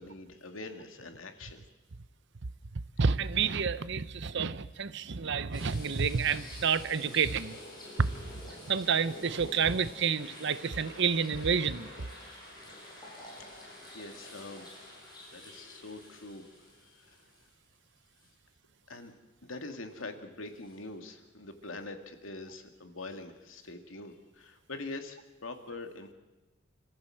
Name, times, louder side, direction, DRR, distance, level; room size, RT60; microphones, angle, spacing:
voice 1, 0.0-1.6 13.9-14.7 15.3-16.4 16.8-17.2 18.9-19.1 19.4-26.1, left 2 dB, 90° left, 2.3 m, -44 dB
voice 2, 2.7-7.6 8.0-8.1 8.6-11.9, right 6 dB, 65° right, 0.8 m, -29 dB
sound 1, 5.5-17.7 18.2-18.3 20.6-20.8, left 1 dB, 20° left, 7.4 m, -48 dB
27.0 x 14.5 x 7.8 m
head